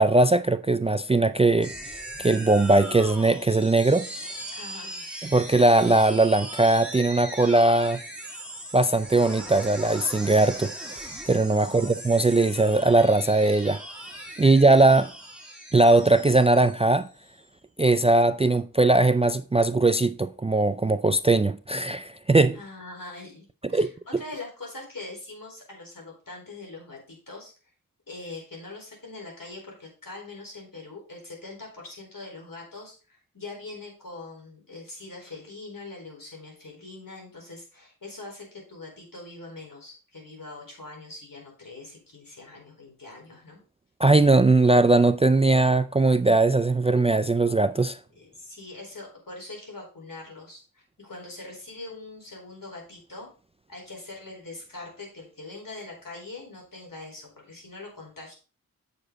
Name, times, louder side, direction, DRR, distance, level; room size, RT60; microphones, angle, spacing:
voice 1, 0.0-1.7 2.2-4.1 5.2-8.0 8.7-13.8 14.4-15.1 15.7-17.1 17.8-22.6 23.7-23.9 44.0-48.0, right 2 dB, 20° right, 0.3 m, -20 dB
sound 1, 1.6-17.4, right 1 dB, 5° right, 2.5 m, -39 dB
voice 2, 4.5-5.0 11.6-12.0 14.4-14.6 22.5-23.5 23.7-23.9 24.2-27.5 28.1-43.6 48.2-53.3 53.7-58.3, left 2 dB, 65° left, 4.5 m, -42 dB
8.0 x 6.8 x 3.9 m
wide cardioid pair, 60°, 35 cm